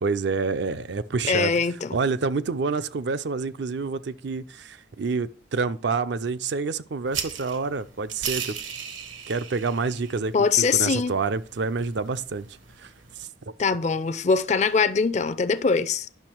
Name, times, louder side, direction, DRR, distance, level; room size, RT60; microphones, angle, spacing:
voice 1, 0.0-1.5 1.9-8.5 9.3-12.5 12.8-12.9 13.2-13.5, right 4 dB, 65° right, 0.5 m, -28 dB
voice 2, 1.3-2.0 10.3-11.1 13.6-16.1, left 5 dB, 35° left, 0.4 m, -22 dB
sound 1, 7.1-13.2, right 7 dB, 85° right, 1.2 m, -38 dB
10.5 x 6.2 x 4.5 m
head